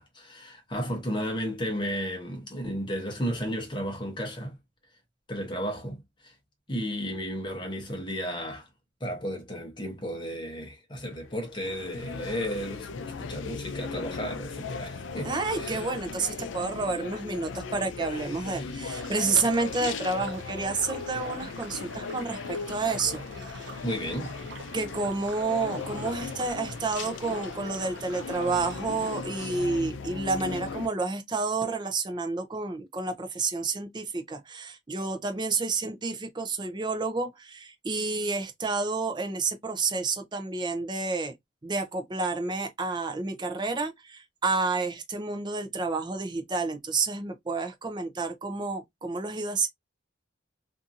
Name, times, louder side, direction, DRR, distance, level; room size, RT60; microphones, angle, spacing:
voice 1, 0.0-4.6 5.3-6.3 6.7-8.7 9.0-12.9 13.2-15.9 18.6-18.7 23.8-24.4, equal, 25° left, 0.8 m, -33 dB
sound 1, 11.1-30.9, left 5 dB, 75° left, 0.4 m, -38 dB
voice 2, 15.2-23.8 24.7-41.3 41.6-49.7, right 3 dB, 25° right, 0.5 m, -30 dB
sound 2, 19.0-28.8, right 3 dB, 75° right, 0.8 m, -47 dB
2.6 x 2.6 x 2.4 m
head